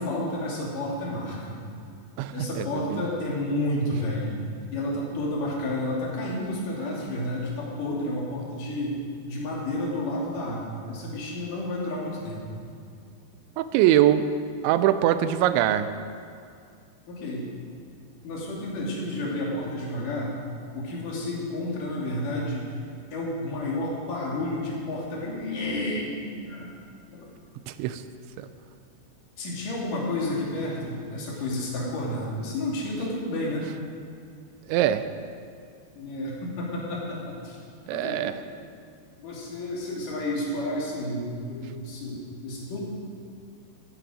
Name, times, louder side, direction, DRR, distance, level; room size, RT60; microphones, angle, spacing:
voice 1, 0.0-1.7 2.3-4.5 4.7-9.0 9.3-12.6 17.1-17.5 18.2-20.4 20.7-22.7 23.1-26.8 27.1-27.3 29.4-33.7 36.0-37.6 37.9-38.2 39.2-42.8, left 1 dB, 50° left, -4 dB, 3.8 m, -31 dB
voice 2, 2.2-3.1 13.6-14.3 14.6-15.9 27.7-28.0 28.4-28.5 34.7-35.1 37.9-38.4, right 12 dB, 85° right, 11 dB, 3.0 m, -23 dB
14.0 x 13.0 x 5.0 m, 2.4 s
omnidirectional pair, 5.2 m